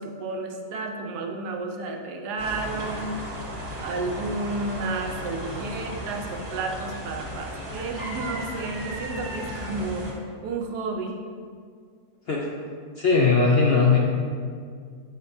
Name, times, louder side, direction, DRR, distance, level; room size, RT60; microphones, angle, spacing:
voice 1, 0.0-3.2 3.8-10.1 10.4-11.2, right 3 dB, 85° right, 3 dB, 1.2 m, -31 dB
sound 1, 2.4-10.1, equal, 35° right, 1.3 m, -35 dB
voice 2, 13.0-14.0, left 4 dB, 65° left, -3 dB, 0.6 m, -19 dB
7.9 x 5.2 x 2.6 m, 2.1 s
omnidirectional pair, 1.7 m